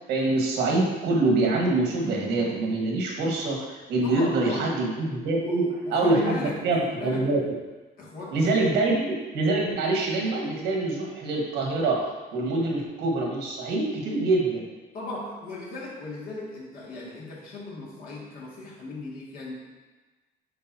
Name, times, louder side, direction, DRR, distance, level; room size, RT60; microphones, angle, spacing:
voice 1, 0.0-5.6 5.9-6.4 6.6-7.4 8.3-12.0 12.3-14.6, right 2 dB, 85° right, -1 dB, 1.6 m, -25 dB
voice 2, 4.0-4.8 5.3-7.3 8.0-8.5 14.9-19.5, left 2 dB, 60° left, -5 dB, 2.1 m, -37 dB
8.9 x 4.8 x 2.8 m, 1.2 s
cardioid pair, 110°, 17 cm